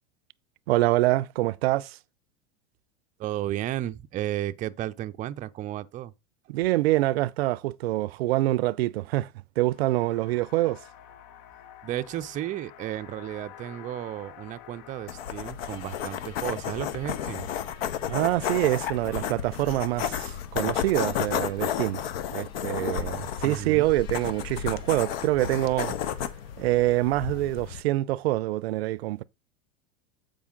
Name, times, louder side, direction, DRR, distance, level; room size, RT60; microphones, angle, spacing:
voice 1, 0.7-2.0 6.5-9.3 9.6-10.8 18.1-22.0 22.3-25.9 26.6-29.2, right 17 dB, 80° right, 0.5 m, -25 dB
voice 2, 3.2-6.1 11.8-17.5 23.4-23.9, right 13 dB, 25° right, 0.4 m, -33 dB
sound 1, 9.7-27.4, left 10 dB, 50° left, 0.9 m, -50 dB
sound 2, 15.1-27.8, left 9 dB, 75° left, 1.0 m, -32 dB
8.4 x 5.1 x 3.7 m
supercardioid pair, 125°, 31 cm